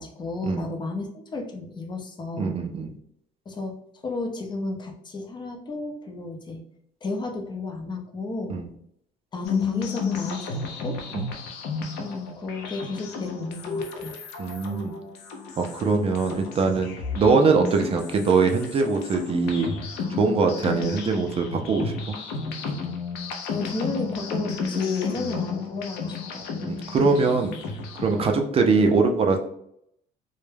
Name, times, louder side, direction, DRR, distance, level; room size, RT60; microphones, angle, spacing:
voice 1, 0.0-2.5 3.5-3.7 4.0-6.6 7.0-8.6 9.3-11.0 12.0-14.1 23.5-26.5, left 3 dB, 25° left, 3 dB, 0.5 m, -32 dB
voice 2, 2.3-2.9 8.5-8.7 11.1-11.2 14.4-14.9 15.6-19.7 20.2-22.2 25.2-25.4 26.6-27.5 28.0-29.4, right 4 dB, 35° right, 4 dB, 0.4 m, -22 dB
sound 1, 9.4-28.3, left 5 dB, 85° left, 0.5 m, -33 dB
2.2 x 2.1 x 3.1 m, 0.72 s
cardioid pair, 110°, 17 cm